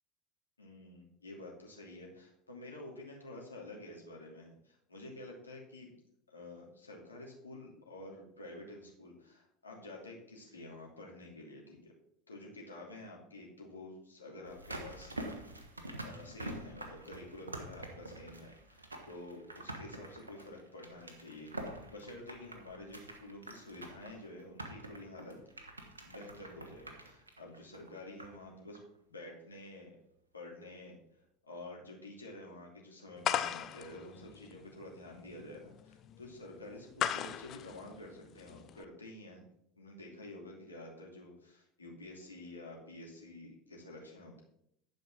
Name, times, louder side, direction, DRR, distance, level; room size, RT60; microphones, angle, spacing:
voice 1, 0.6-5.9 6.3-11.9 12.3-15.4 16.0-25.4 26.0-28.8 29.1-30.0 30.3-30.9 31.5-39.4 39.8-44.4, left 2 dB, 85° left, -2 dB, 2.5 m, -49 dB
sound 1, 14.4-28.5 28.7-28.8, right 1 dB, 85° right, 1.3 m, -46 dB
sound 2, 33.2-38.8, left 10 dB, 40° left, 0.6 m, -38 dB
10.5 x 5.3 x 6.1 m, 0.73 s
figure-of-eight pair, 75°, 0 cm